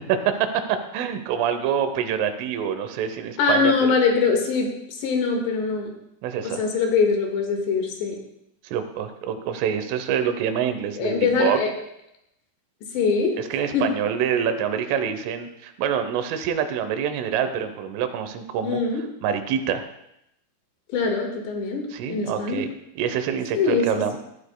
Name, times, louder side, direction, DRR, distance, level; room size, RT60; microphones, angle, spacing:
voice 1, 0.0-4.0 6.2-6.6 8.6-11.6 13.4-18.8 19.2-19.9 21.9-22.7 23.0-24.2, right 8 dB, 85° right, 8 dB, 3.5 m, -26 dB
voice 2, 3.4-5.9 6.4-8.2 11.0-11.7 12.9-13.4 13.7-13.9 18.6-19.0 20.9-22.7 23.5-23.9, left 5 dB, 70° left, 2 dB, 3.7 m, -23 dB
18.5 x 13.0 x 2.3 m, 0.80 s
omnidirectional pair, 5.6 m